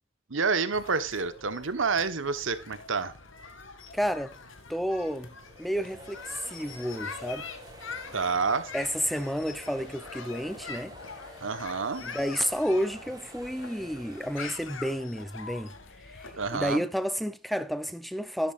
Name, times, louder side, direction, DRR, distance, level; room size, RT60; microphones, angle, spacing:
voice 1, 0.3-3.1 8.1-8.7 11.4-12.0 16.4-16.8, right 4 dB, 80° right, 1.2 m, -28 dB
sound 1, 0.7-16.7, left 4 dB, 80° left, 2.1 m, -44 dB
voice 2, 3.9-4.4 4.7-6.2 6.5-7.5 8.7-10.9 12.0-15.7 16.0-18.5, equal, ahead, 0.6 m, -31 dB
sound 2, 5.3-14.5, right 1 dB, 20° right, 3.0 m, -49 dB
12.5 x 12.0 x 2.5 m
head